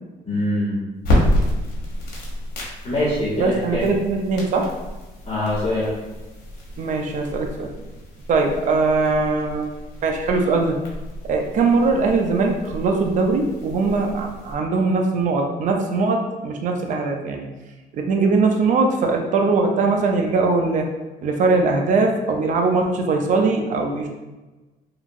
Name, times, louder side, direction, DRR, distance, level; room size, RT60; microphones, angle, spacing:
voice 1, 0.2-0.8 2.8-3.8 5.3-5.9, left 1 dB, 30° left, -11 dB, 1.1 m, -23 dB
sound 1, 1.0-14.5, left 1 dB, 65° left, 1.0 m, -29 dB
voice 2, 3.4-4.7 6.8-7.7 8.3-9.7 10.0-10.8 11.2-17.5 17.9-20.9 21.2-24.1, right 3 dB, 50° right, 3 dB, 0.5 m, -21 dB
2.8 x 2.5 x 2.6 m, 1.1 s
cardioid pair, 110°, 17 cm